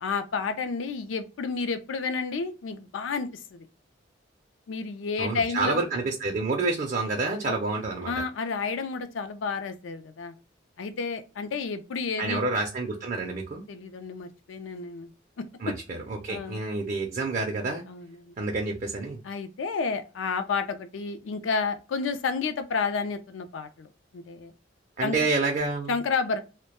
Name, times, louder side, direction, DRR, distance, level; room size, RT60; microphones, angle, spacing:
voice 1, 0.0-3.7 4.7-5.8 7.5-7.6 8.1-10.3 10.8-12.4 13.7-15.1 15.4-15.7 16.3-16.6 17.9-18.4 19.2-24.5 25.0-25.3 25.9-26.4, left 4 dB, 80° left, 0.4 m, -31 dB
voice 2, 5.2-8.2 12.2-13.6 15.6-17.8 18.4-19.2 25.0-25.9, right 3 dB, 40° right, 0.4 m, -28 dB
2.1 x 2.1 x 2.8 m
head